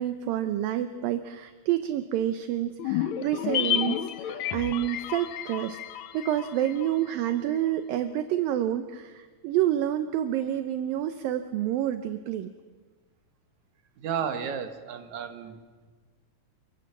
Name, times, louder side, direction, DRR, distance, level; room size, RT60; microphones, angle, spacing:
voice 1, 0.0-5.8 6.1-12.5, right 12 dB, 75° right, 9 dB, 2.5 m, -28 dB
sound 1, 2.8-7.3 7.5-7.6, left 11 dB, 80° left, 1.6 m, -31 dB
voice 2, 14.0-15.6, right 7 dB, 55° right, 7 dB, 2.9 m, -32 dB
29.0 x 24.0 x 7.4 m, 1.4 s
omnidirectional pair, 4.4 m